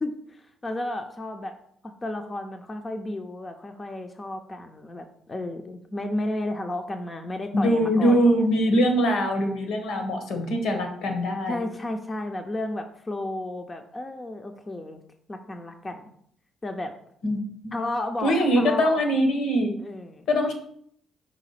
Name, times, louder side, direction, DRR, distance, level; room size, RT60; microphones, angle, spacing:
voice 1, 0.0-1.5 1.8-8.4 11.5-15.0 15.3-16.1 16.6-16.9 17.7-18.9 19.8-20.2, left 1 dB, 25° left, 5 dB, 0.6 m, -33 dB
voice 2, 7.5-11.6 17.2-17.4 17.6-17.7 18.2-19.7 20.3-20.5, equal, 80° left, 4 dB, 1.5 m, -22 dB
5.1 x 3.6 x 5.7 m, 0.66 s
cardioid pair, 90°, 0 cm